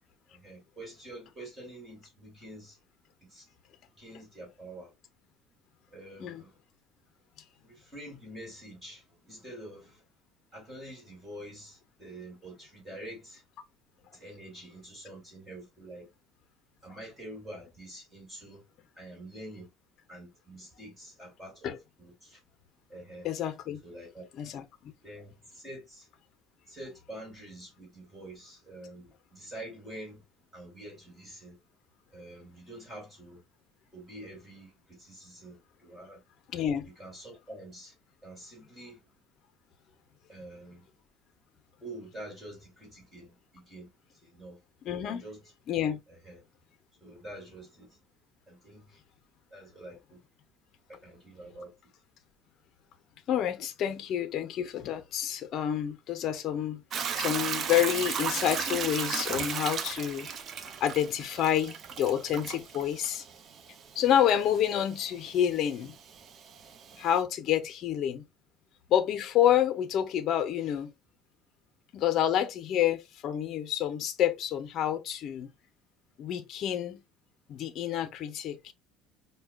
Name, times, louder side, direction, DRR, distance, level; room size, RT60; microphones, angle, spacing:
voice 1, 0.3-2.8 3.2-3.5 4.0-4.9 5.9-6.5 7.6-10.0 10.5-13.4 14.1-16.1 16.8-18.6 19.0-19.7 20.1-21.7 22.0-22.4 22.9-23.3 23.8-24.3 25.0-26.1 26.7-30.2 30.5-31.6 32.1-33.4 33.9-36.2 37.0-37.9 38.2-39.0 40.3-40.9 41.8-43.9 44.2-44.6 45.0-45.5 46.1-46.4 47.0-48.0 48.5-49.0 49.5-50.2 50.9-51.7, right 1 dB, 15° right, 2.1 m, -46 dB
voice 2, 23.2-23.8 24.3-24.6 36.5-36.9 44.8-45.2 45.7-46.0 53.3-56.8 57.2-60.3 60.8-63.2 64.0-66.0 67.0-68.2 68.9-70.9 71.9-75.5 76.2-77.0 77.5-78.7, left 10 dB, 50° left, 0.6 m, -28 dB
Hiss / Toilet flush / Trickle dribble, 56.9-67.2, right 7 dB, 40° right, 0.4 m, -36 dB
4.7 x 2.2 x 2.2 m
cardioid pair, 140°, 0 cm